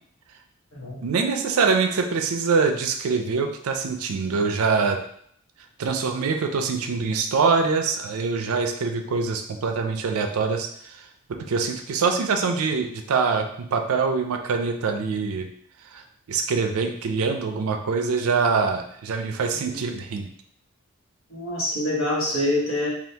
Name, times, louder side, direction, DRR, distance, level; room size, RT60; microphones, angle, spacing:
voice 1, 1.0-5.0 5.8-11.1 11.5-15.5 15.8-16.0 16.3-20.3, right 5 dB, 80° right, 5 dB, 0.4 m, -24 dB
voice 2, 21.3-22.9, left 1 dB, 75° left, -5 dB, 1.1 m, -26 dB
2.7 x 2.4 x 3.3 m, 0.66 s
head